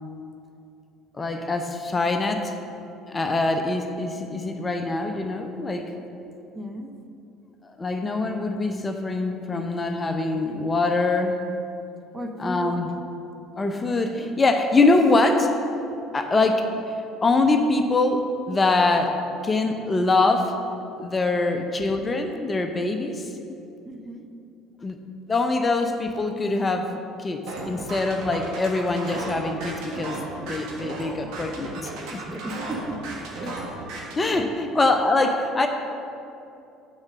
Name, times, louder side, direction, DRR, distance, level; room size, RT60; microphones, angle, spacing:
voice 1, 1.1-2.5 3.1-5.9 7.6-11.4 12.4-12.9 13.6-15.5 16.1-19.2 19.4-20.5 21.0-23.3 24.8-25.0 25.3-32.2 33.4-33.5 34.2-35.7, left 2 dB, 25° left, 5 dB, 0.6 m, -24 dB
voice 2, 6.5-6.9 12.1-12.8 23.8-24.2 32.3-33.6, right 1 dB, 25° right, 5 dB, 0.7 m, -35 dB
sound 1, 27.5-34.3, right 2 dB, 60° right, 1.2 m, -35 dB
6.4 x 4.6 x 6.1 m, 2.7 s
figure-of-eight pair, 60°, 0 cm